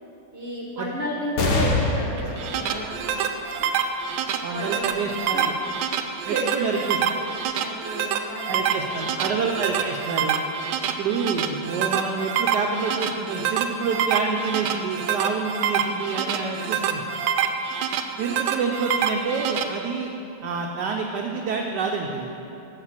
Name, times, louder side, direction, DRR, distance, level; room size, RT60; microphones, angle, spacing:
voice 1, 0.3-3.7 4.5-4.9 5.3-5.6 6.3-6.9 7.4-8.8 16.1-17.6, right 1 dB, 45° right, -2 dB, 0.9 m, -33 dB
sound 1, 1.4-8.3 8.9-9.0 10.1-10.6, left 3 dB, 60° left, 1.3 m, -31 dB
sound 2, 2.2-19.6, right 7 dB, 85° right, 1.4 m, -26 dB
voice 2, 4.4-5.6 6.3-7.0 8.5-10.4 11.0-17.0 18.2-20.1 20.4-22.3, right 5 dB, 70° right, 1 dB, 1.1 m, -28 dB
7.2 x 6.7 x 7.3 m, 2.9 s
omnidirectional pair, 2.2 m